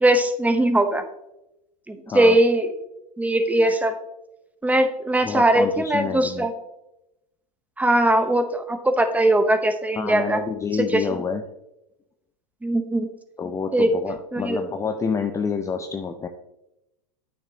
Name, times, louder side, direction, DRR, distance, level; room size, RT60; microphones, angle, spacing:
voice 1, 0.0-1.0 1.9-2.7 3.2-3.9 4.6-6.5 7.8-10.4 10.9-11.2 12.6-13.1 13.7-13.9 14.3-14.6, right 1 dB, 5° right, 8 dB, 0.8 m, -20 dB
voice 2, 2.1-2.4 5.2-6.5 10.0-11.4 13.4-16.3, left 5 dB, 15° left, 6 dB, 0.4 m, -28 dB
8.8 x 6.4 x 2.7 m, 0.89 s
hypercardioid pair, 110°, 21 cm